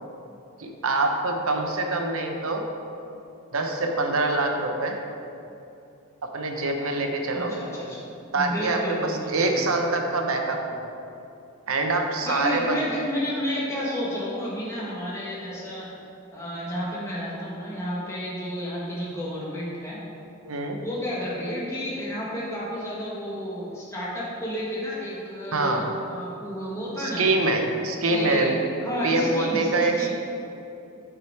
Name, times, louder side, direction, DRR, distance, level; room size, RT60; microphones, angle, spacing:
voice 1, 0.6-2.7 3.5-5.0 6.2-7.5 8.3-10.8 11.7-12.8 20.5-20.8 25.5-25.9 27.0-28.6 29.0-30.1, right 2 dB, 80° right, 3 dB, 0.9 m, -25 dB
voice 2, 7.3-8.0 8.4-9.6 12.2-15.9 16.3-20.0 20.8-25.8 26.1-27.2 28.1-28.5 28.8-30.1, equal, 15° left, -7 dB, 1.6 m, -31 dB
8.5 x 5.0 x 4.7 m, 2.8 s
head